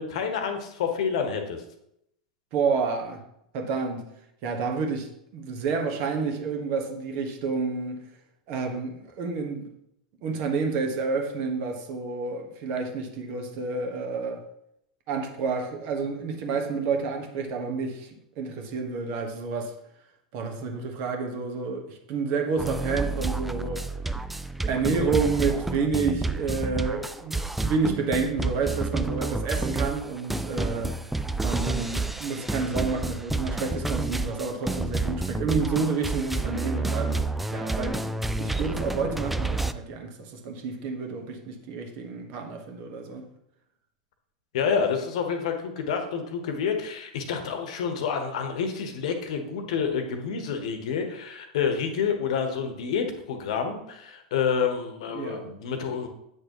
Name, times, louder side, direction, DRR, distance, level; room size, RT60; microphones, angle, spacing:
voice 1, 0.0-1.6 44.5-56.1, left 6 dB, 55° left, 6 dB, 1.2 m, -28 dB
voice 2, 2.5-3.2 3.5-4.0 4.4-8.0 8.5-9.7 10.2-14.4 15.1-18.1 18.4-19.7 20.3-23.8 24.7-30.9 31.4-37.3 37.5-38.0 38.4-43.2 55.1-55.5, right 4 dB, 45° right, 3 dB, 1.4 m, -29 dB
sound 1, 22.6-39.7, right 2 dB, 5° right, 0.4 m, -29 dB
8.5 x 6.4 x 3.0 m, 0.77 s
figure-of-eight pair, 90°, 4 cm